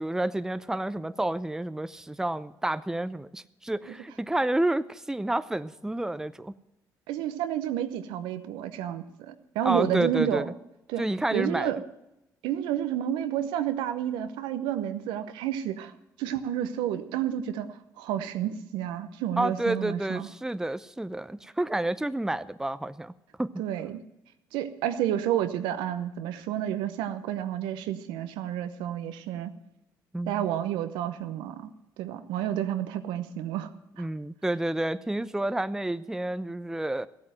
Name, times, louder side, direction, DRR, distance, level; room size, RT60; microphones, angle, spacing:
voice 1, 0.0-6.5 9.6-10.5 11.0-11.7 19.4-23.1 23.4-23.5 30.1-30.4 34.0-37.1, right 1 dB, 5° right, 14 dB, 0.6 m, -29 dB
voice 2, 7.1-10.5 10.9-11.8 12.4-15.9 16.2-20.3 23.6-24.0 24.5-29.5 30.3-31.7 32.0-33.7 34.0-34.1, right 11 dB, 85° right, 10 dB, 0.9 m, -30 dB
14.5 x 8.6 x 7.7 m, 0.91 s
supercardioid pair, 70°, 8 cm